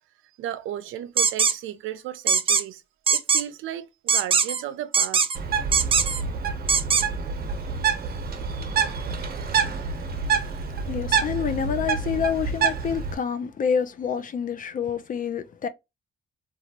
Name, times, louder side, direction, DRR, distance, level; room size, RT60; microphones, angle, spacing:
voice 1, 0.4-2.8 3.1-5.3, right 11 dB, 85° right, 0.5 m, -34 dB
sound 1, 1.2-1.5 2.3-2.6 3.1-3.4 4.1-4.6 4.9-5.4 5.7-6.2 6.7-7.0, right 6 dB, 30° right, 0.4 m, -20 dB
Bird, 5.3-13.1, right 6 dB, 50° right, 0.9 m, -27 dB
voice 2, 9.7-15.7, left 7 dB, 45° left, 0.5 m, -28 dB
2.9 x 2.3 x 2.8 m
cardioid pair, 90°, 20 cm